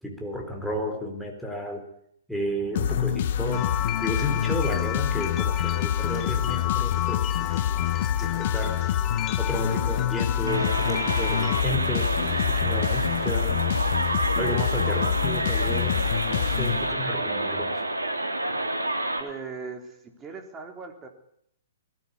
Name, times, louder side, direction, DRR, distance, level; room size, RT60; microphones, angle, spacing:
voice 1, 0.0-1.9 2.3-7.9 8.2-8.9 9.4-13.6 14.3-17.8, equal, ahead, 2 dB, 4.2 m, -32 dB
sound 1, 2.7-17.3, left 10 dB, 50° left, 1.0 m, -27 dB
sound 2, 3.5-11.6, left 12 dB, 25° left, 1.3 m, -33 dB
sound 3, 10.5-19.2, right 1 dB, 85° right, 2.9 m, -28 dB
voice 2, 19.2-21.1, right 5 dB, 20° right, 4 dB, 3.8 m, -39 dB
20.0 x 14.0 x 9.9 m, 0.70 s
figure-of-eight pair, 115°, 0 cm